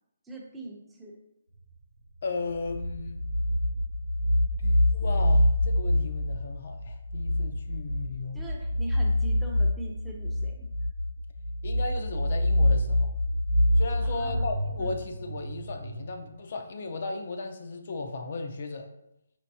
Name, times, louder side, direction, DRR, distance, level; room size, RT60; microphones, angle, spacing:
voice 1, 0.2-1.2 8.3-10.7 14.1-14.5 14.8-15.0, right 2 dB, 5° right, -2 dB, 0.6 m, -42 dB
sound 1, 1.6-1.7 2.2-16.1, left 1 dB, 70° right, 0.5 m, -26 dB
voice 2, 2.2-3.2 4.6-8.4 11.6-13.2 13.8-18.9, left 3 dB, 55° left, 5 dB, 0.5 m, -35 dB
4.5 x 3.2 x 2.7 m, 0.81 s
hypercardioid pair, 155°, 0 cm